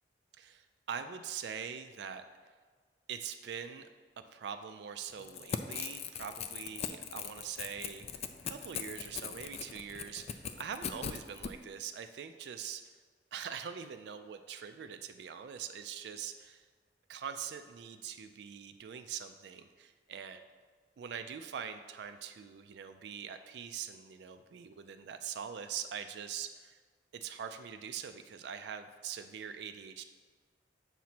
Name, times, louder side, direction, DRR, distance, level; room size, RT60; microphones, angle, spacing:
voice 1, 0.4-2.2 3.1-3.9 4.2-12.8 13.3-16.6 17.1-20.4 21.0-26.8 27.1-30.0, right 7 dB, 65° right, 8 dB, 0.3 m, -43 dB
Crackle / Tearing, 5.2-11.5, left 7 dB, 35° left, 0.3 m, -40 dB
7.3 x 2.8 x 5.9 m, 1.5 s
head